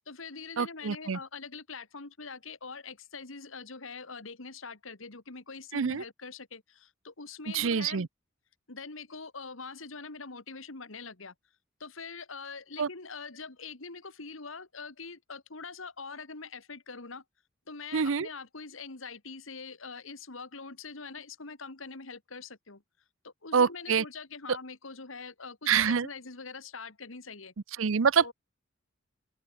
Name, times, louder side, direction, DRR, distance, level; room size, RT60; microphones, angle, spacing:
voice 1, 0.1-8.1 8.7-11.3 11.8-17.2 17.7-22.8 23.2-27.5 28.2-28.3, left 4 dB, 80° left, 2.2 m, -43 dB
voice 2, 0.6-1.2 5.7-6.0 7.5-8.1 12.8-12.9 17.9-18.3 23.5-24.0 25.7-26.1 27.8-28.3, right 6 dB, 80° right, 0.6 m, -26 dB
open air
head